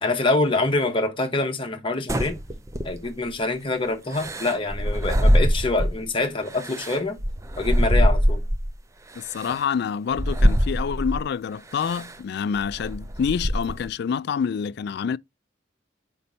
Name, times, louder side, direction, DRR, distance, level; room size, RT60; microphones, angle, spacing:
voice 1, 0.0-2.4 2.8-7.2 7.6-8.4, left 2 dB, 25° left, 1.2 m, -25 dB
sound 1, 2.1-3.3 4.1-6.1 6.5-8.7 9.4-9.5 10.1-11.3 11.8-12.1 12.6-13.9, equal, 15° right, 0.5 m, -23 dB
voice 2, 9.2-15.2, left 7 dB, 55° left, 0.3 m, -27 dB
6.8 x 5.2 x 2.7 m
head